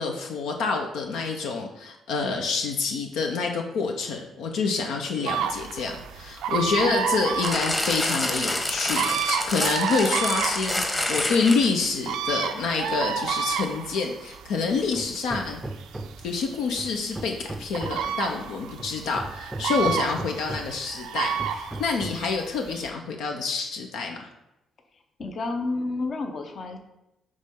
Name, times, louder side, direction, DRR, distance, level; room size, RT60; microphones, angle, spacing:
voice 1, 0.0-15.6 16.2-24.3, left 4 dB, 85° left, 3 dB, 0.8 m, -27 dB
sound 1, 5.3-22.9, right 7 dB, 90° right, 0.5 m, -31 dB
sound 2, 7.4-11.9 12.6-12.7, left 1 dB, 25° left, 1.1 m, -28 dB
Hammer, 14.9-16.3 16.8-18.2 18.8-20.8 21.4-22.3, right 2 dB, 10° right, 0.5 m, -37 dB
voice 2, 25.2-26.8, left 3 dB, 50° left, 5 dB, 0.8 m, -30 dB
9.4 x 3.2 x 3.8 m, 0.90 s
cardioid pair, 90°, 0 cm